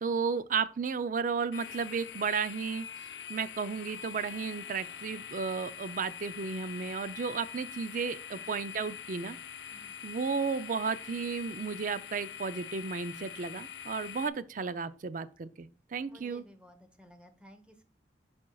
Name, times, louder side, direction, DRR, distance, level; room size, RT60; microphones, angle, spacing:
voice 1, 0.0-2.9 3.3-9.4 10.0-16.4, right 5 dB, 50° right, 0.5 m, -33 dB
sound 1, 1.5-14.3, left 8 dB, 80° left, 0.4 m, -44 dB
voice 2, 16.1-17.8, equal, 5° right, 1.0 m, -56 dB
10.5 x 4.4 x 2.3 m
head